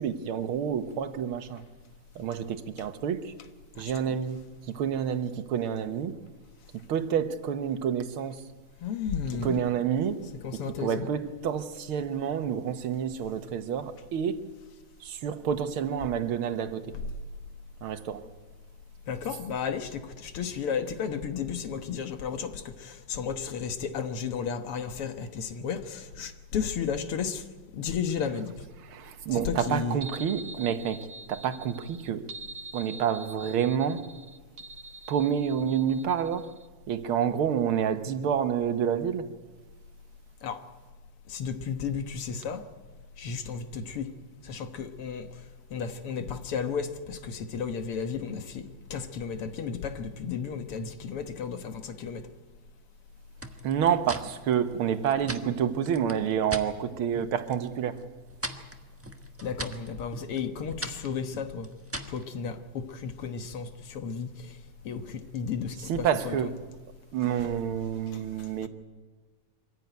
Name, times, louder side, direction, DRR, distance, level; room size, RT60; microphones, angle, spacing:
voice 1, 0.0-1.6 2.2-3.3 3.8-4.4 4.8-6.2 6.9-8.4 9.4-10.2 10.5-14.4 15.0-16.9 17.8-18.3 28.9-31.0 31.3-32.2 32.7-34.0 35.1-36.5 36.9-39.3 53.6-57.9 65.9-66.6 67.1-68.7, right 8 dB, 75° right, 2.0 m, -28 dB
voice 2, 8.8-9.6 10.4-11.1 19.1-27.4 27.7-28.5 29.3-30.0 40.4-40.6 41.3-42.6 43.2-44.1 44.4-45.3 45.7-48.6 48.9-52.3 59.4-61.7 62.1-64.5 64.9-66.3 67.2-67.5 68.1-68.2 68.6-68.7, left 6 dB, 90° left, 2.3 m, -33 dB
sound 1, 30.0-36.7, right 3 dB, 45° right, 0.7 m, -45 dB
sound 2, 53.4-56.7 57.1-57.7 58.0-62.2, right 1 dB, 10° right, 0.7 m, -40 dB
24.5 x 15.5 x 9.3 m
omnidirectional pair, 2.4 m